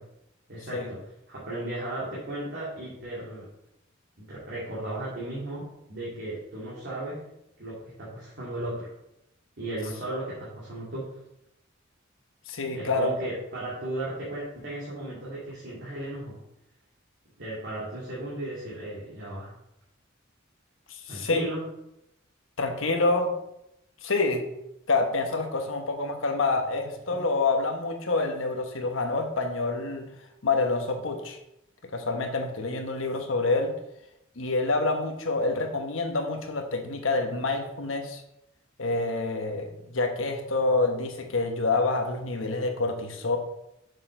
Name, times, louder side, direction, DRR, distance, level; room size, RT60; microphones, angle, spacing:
voice 1, 0.5-1.0 1.3-3.5 4.2-7.2 7.6-8.9 9.6-11.1 12.7-16.4 17.4-19.5 21.1-21.6 27.1-27.2, right 1 dB, 60° right, -8 dB, 2.4 m, -35 dB
voice 2, 12.5-13.1 20.9-21.4 22.6-23.3 24.0-24.5 24.9-30.1 30.4-31.4 31.8-33.7 34.4-38.2 38.8-43.4, left 3 dB, 85° left, 4 dB, 1.1 m, -27 dB
6.7 x 6.6 x 3.8 m, 0.83 s
head